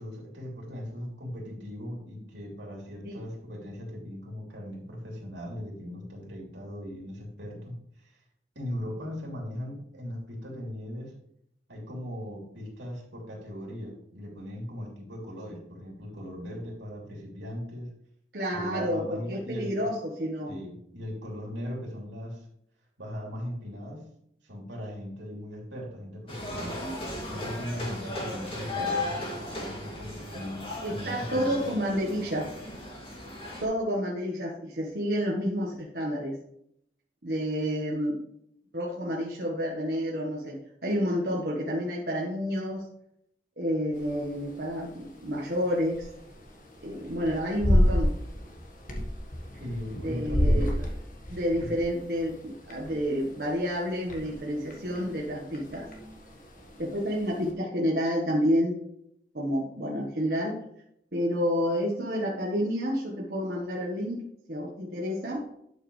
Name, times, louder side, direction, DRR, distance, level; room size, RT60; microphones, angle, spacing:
voice 1, 0.0-8.2 8.5-11.1 11.7-17.9 18.5-19.9 20.5-22.5 23.0-24.0 24.4-26.8 27.3-30.6 30.9-31.6 49.6-50.7 51.6-51.7, equal, 85° right, -1 dB, 3.2 m, -39 dB
voice 2, 18.3-20.6 30.8-32.5 33.6-36.4 37.2-38.2 38.7-42.9 43.6-46.1 46.8-48.2 50.0-50.8 51.3-55.9 56.8-58.8 59.3-60.6 61.1-64.2 64.5-65.5, equal, 60° right, -3 dB, 1.4 m, -29 dB
sound 1, 26.3-33.6, left 2 dB, 30° left, 2.6 m, -36 dB
sound 2, 43.9-57.5, left 1 dB, 45° left, 1.7 m, -32 dB
11.5 x 6.3 x 3.3 m, 0.74 s
head